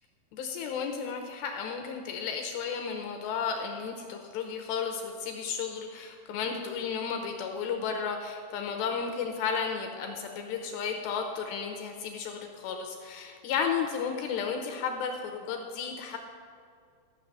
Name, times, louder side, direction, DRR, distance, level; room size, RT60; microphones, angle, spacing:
voice 1, 0.3-16.2, left 6 dB, 80° left, 4 dB, 2.5 m, -33 dB
14.0 x 6.0 x 7.2 m, 2.2 s
omnidirectional pair, 5.5 m